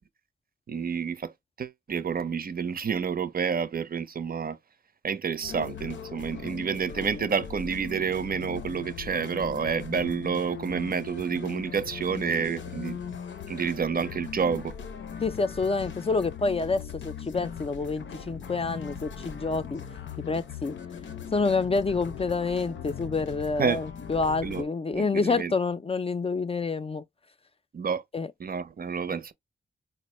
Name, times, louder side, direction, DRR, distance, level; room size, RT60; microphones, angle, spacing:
voice 1, 0.7-1.3 1.6-4.6 5.0-13.0 13.5-14.7 23.6-23.8 24.4-24.6 24.9-25.5 27.7-28.0 28.4-29.3, right 6 dB, 50° right, 0.6 m, -29 dB
sound 1, 5.4-24.6, left 7 dB, 90° left, 0.6 m, -39 dB
voice 2, 15.2-19.8 20.2-20.8 21.3-27.0 28.1-28.3, left 4 dB, 30° left, 0.4 m, -28 dB
4.1 x 2.1 x 3.0 m
cardioid pair, 65°, 19 cm